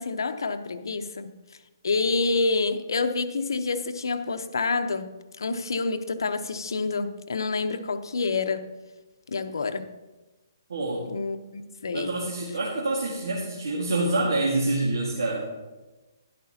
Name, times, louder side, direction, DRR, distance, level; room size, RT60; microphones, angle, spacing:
voice 1, 0.0-1.3 1.8-8.6 9.3-9.9 11.1-12.1, left 3 dB, 80° left, 8 dB, 0.9 m, -28 dB
voice 2, 10.7-11.1 11.9-15.5, right 2 dB, 75° right, -3 dB, 1.9 m, -27 dB
12.0 x 11.5 x 2.9 m, 1.1 s
hypercardioid pair, 170°, 2 cm